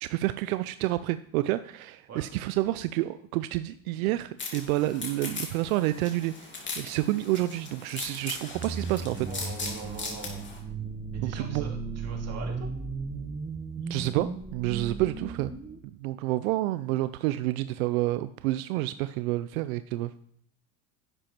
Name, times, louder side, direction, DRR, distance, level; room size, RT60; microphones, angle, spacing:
voice 1, 0.0-9.3 11.2-11.7 13.9-15.5 15.8-20.1, right 16 dB, 85° right, 14 dB, 0.5 m, -29 dB
sound 1, 4.4-10.6, left 3 dB, 25° left, 3.1 m, -39 dB
sound 2, 8.5-15.8, right 4 dB, 20° right, 1.2 m, -36 dB
voice 2, 9.2-10.5 11.1-12.7, right 5 dB, 40° right, 1 dB, 3.1 m, -42 dB
11.0 x 7.7 x 4.4 m, 0.65 s
supercardioid pair, 100°, 41 cm